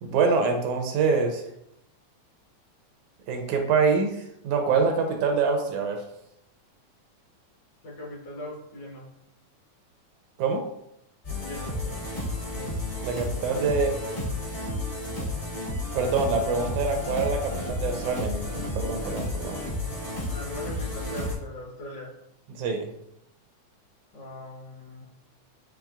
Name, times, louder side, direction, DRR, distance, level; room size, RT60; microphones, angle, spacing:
voice 1, 0.0-1.4 3.3-6.0 10.4-10.6 13.0-13.9 15.9-19.6 22.5-22.9, right 4 dB, 80° right, 4 dB, 2.0 m, -25 dB
voice 2, 7.8-9.1 11.4-11.8 20.3-22.2 24.1-25.0, left 1 dB, 60° left, -5 dB, 1.9 m, -40 dB
sound 1, 11.2-21.3, left 1 dB, 40° left, 1.0 m, -32 dB
7.4 x 3.0 x 2.3 m, 0.78 s
omnidirectional pair, 3.5 m